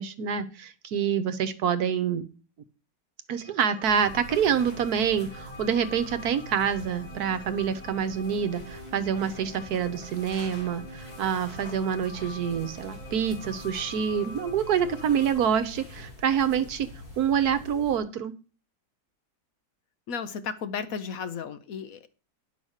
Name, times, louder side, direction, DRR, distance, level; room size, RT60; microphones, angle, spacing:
voice 1, 0.0-2.2 3.3-16.9 17.2-18.3, right 8 dB, 70° right, 11 dB, 1.3 m, -27 dB
sound 1, 3.3-15.3, left 2 dB, 15° right, 5.9 m, -44 dB
sound 2, 3.8-18.0, left 1 dB, 25° left, 3.1 m, -46 dB
voice 2, 20.1-22.1, left 6 dB, 65° left, 11 dB, 1.1 m, -34 dB
10.5 x 5.4 x 6.4 m, 0.36 s
omnidirectional pair, 1.8 m